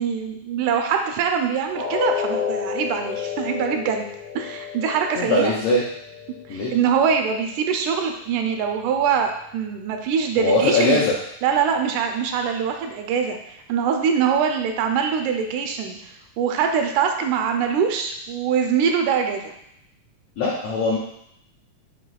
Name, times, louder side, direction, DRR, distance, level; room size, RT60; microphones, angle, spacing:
voice 1, 0.0-4.1 4.4-5.5 6.5-11.0 11.4-16.0 16.4-19.5, right 7 dB, 85° right, 4 dB, 2.0 m, -23 dB
sound 1, 1.7-7.7 8.1-8.3 8.8-8.9, left 7 dB, 55° right, 0.6 m, -31 dB
voice 2, 5.2-5.8 6.5-6.7 10.4-11.1 20.4-21.0, left 2 dB, 85° left, -5 dB, 1.3 m, -21 dB
7.4 x 2.9 x 2.3 m, 0.75 s
omnidirectional pair, 3.4 m